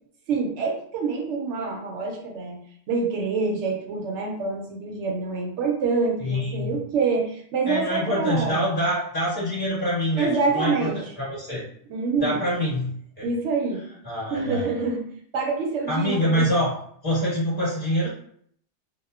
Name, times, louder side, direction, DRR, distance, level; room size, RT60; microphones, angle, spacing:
voice 1, 0.3-2.6 2.9-8.7 10.2-11.0 11.9-12.4 13.2-13.8 14.3-15.1 15.3-16.5, right 4 dB, 90° right, 2 dB, 0.9 m, -26 dB
voice 2, 6.2-6.7 7.6-11.6 12.2-12.9 13.2-13.3 14.0-14.8 15.9-16.7 17.0-18.1, equal, 20° left, -8 dB, 1.3 m, -25 dB
2.9 x 2.1 x 2.3 m, 0.64 s
omnidirectional pair, 1.2 m